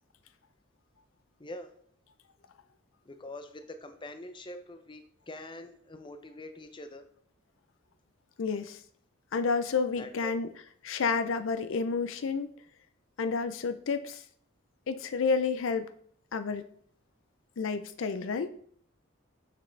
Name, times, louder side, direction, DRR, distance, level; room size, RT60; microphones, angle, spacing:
voice 1, 1.4-1.7 3.0-7.0 9.9-10.3, left 1 dB, 25° left, 8 dB, 0.6 m, -44 dB
voice 2, 8.4-8.8 9.3-10.5 10.8-12.5 13.2-14.2 14.9-15.9 16.3-16.6 17.6-18.5, left 5 dB, 75° left, 11 dB, 0.5 m, -30 dB
7.6 x 6.1 x 3.3 m, 0.62 s
head